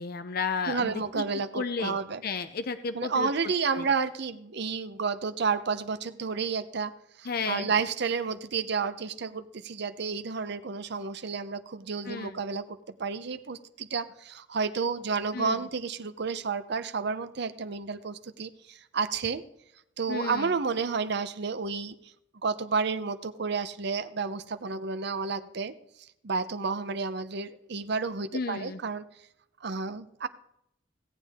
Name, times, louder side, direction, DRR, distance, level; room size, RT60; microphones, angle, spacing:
voice 1, 0.0-1.2 1.5-2.0 2.2-3.3 3.7-3.8 7.3-7.7 12.1-12.4 15.3-15.6 20.1-20.5 28.3-28.8, left 5 dB, 55° left, 10 dB, 0.6 m, -32 dB
voice 2, 0.7-2.2 2.9-6.9 7.2-19.4 20.0-21.9 22.4-25.7 26.2-29.0 29.6-30.3, right 5 dB, 65° right, 12 dB, 0.7 m, -31 dB
17.0 x 8.3 x 3.5 m, 0.77 s
head